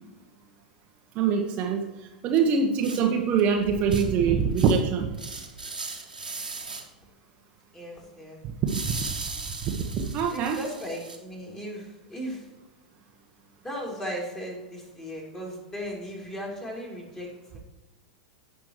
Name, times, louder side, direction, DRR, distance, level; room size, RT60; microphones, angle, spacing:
voice 1, 1.1-1.8 2.2-5.2 8.6-9.1 9.7-10.6, right 6 dB, 35° right, 2 dB, 1.0 m, -24 dB
sound 1, 2.3-2.4 2.8-3.0 3.4-3.5 3.9-4.0 4.6-4.9 5.1-6.8 8.7-11.2, right 3 dB, 80° right, 1.5 m, -37 dB
voice 2, 7.7-8.4 10.3-12.5 13.6-17.6, equal, 15° left, -2 dB, 3.2 m, -37 dB
16.5 x 6.0 x 3.1 m, 1.1 s
figure-of-eight pair, 90°, 4 cm